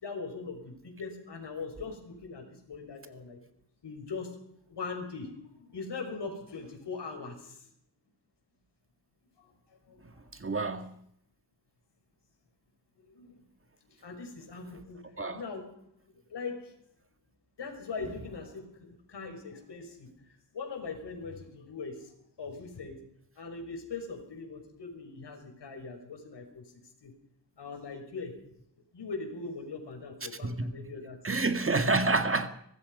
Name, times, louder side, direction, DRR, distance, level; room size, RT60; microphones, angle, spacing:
voice 1, 0.0-3.4 3.8-4.4 4.7-7.7 9.4-10.5 13.0-13.4 13.9-16.8 17.6-23.1 23.4-26.7 27.0-27.1 27.6-28.4 28.9-31.4, left 4 dB, 70° left, 6.2 m, -41 dB
voice 2, 10.4-10.9 15.2-15.4 30.4-30.7 31.2-32.5, right 3 dB, 30° right, 1.9 m, -28 dB
24.0 x 19.5 x 5.6 m
wide cardioid pair, 110°, 42 cm